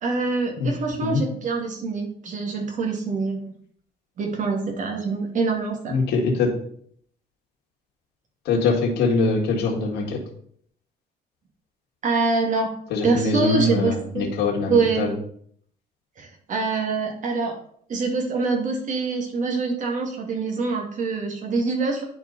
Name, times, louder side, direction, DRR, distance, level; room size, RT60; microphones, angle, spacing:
voice 1, 0.0-3.5 4.2-6.0 12.0-12.7 13.0-14.2 14.7-15.1 16.2-17.6 17.9-22.0, right 4 dB, 50° right, 2 dB, 2.1 m, -25 dB
voice 2, 5.9-6.5 8.4-10.2 12.9-15.2, left 3 dB, 80° left, -1 dB, 1.9 m, -23 dB
9.8 x 4.5 x 4.0 m, 0.63 s
cardioid pair, 110°, 17 cm